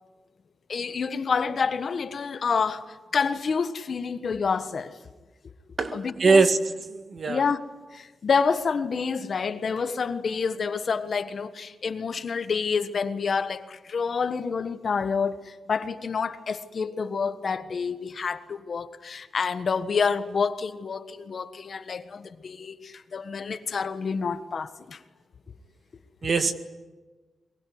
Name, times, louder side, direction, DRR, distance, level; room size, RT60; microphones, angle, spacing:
voice 1, 0.7-4.9 5.9-6.5 7.3-7.6 7.9-25.0, left 5 dB, 50° left, 1.4 m, -28 dB
voice 2, 5.8-6.6 6.9-7.4 26.2-26.5, right 4 dB, 45° right, 1.9 m, -22 dB
23.0 x 22.0 x 9.6 m
wide cardioid pair, 135°, 0 cm